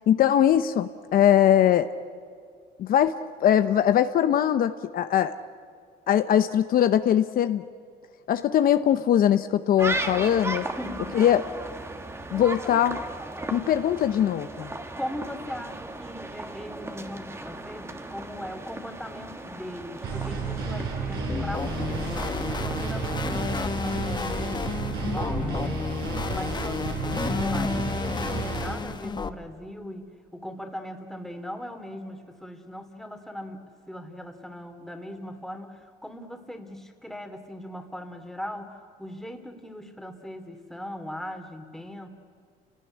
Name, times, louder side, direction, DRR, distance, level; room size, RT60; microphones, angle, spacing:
voice 1, 0.1-1.9 2.8-3.1 3.4-5.3 6.1-7.6 8.3-10.7 11.1-11.4 12.3-13.0 13.5-14.7, left 10 dB, 60° left, 10 dB, 0.8 m, -21 dB
sound 1, 9.8-23.7, right 2 dB, 15° right, 1.7 m, -36 dB
voice 2, 10.7-11.2 15.0-22.1 22.6-26.0 26.3-42.1, left 1 dB, ahead, 6 dB, 2.7 m, -39 dB
sound 2, 20.0-28.8, right 4 dB, 70° right, 5.4 m, -32 dB
sound 3, 21.3-29.3, left 4 dB, 25° left, 1.1 m, -31 dB
29.5 x 18.0 x 10.0 m, 2.2 s
cardioid pair, 110°, 17 cm